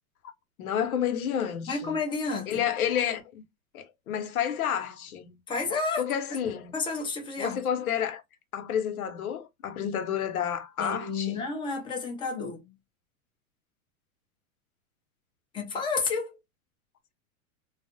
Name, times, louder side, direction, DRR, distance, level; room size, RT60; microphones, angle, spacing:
voice 1, 0.6-2.0 2.5-3.4 3.7-5.4 6.0-6.7 7.4-8.2 8.5-11.4, left 9 dB, 85° left, 0.8 m, -30 dB
voice 2, 1.7-2.6 5.5-6.1 6.7-7.6 10.8-12.7 15.5-16.4, left 4 dB, 10° left, 0.6 m, -31 dB
2.4 x 2.0 x 2.5 m
hypercardioid pair, 130°, 42 cm